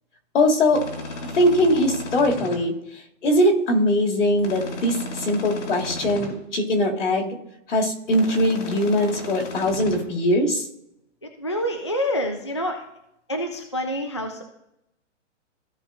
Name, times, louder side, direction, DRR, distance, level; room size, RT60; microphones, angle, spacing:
voice 1, 0.3-0.8 1.3-2.7 3.2-7.4 7.7-10.7, left 1 dB, 75° left, -1 dB, 2.6 m, -21 dB
sound 1, 0.7-2.6 4.4-6.3 8.1-10.0, left 2 dB, 90° left, 3.1 m, -34 dB
voice 2, 11.2-12.8 13.3-14.4, equal, 25° left, 3 dB, 0.3 m, -27 dB
15.5 x 5.5 x 2.5 m, 0.82 s
hypercardioid pair, 175°, 37 cm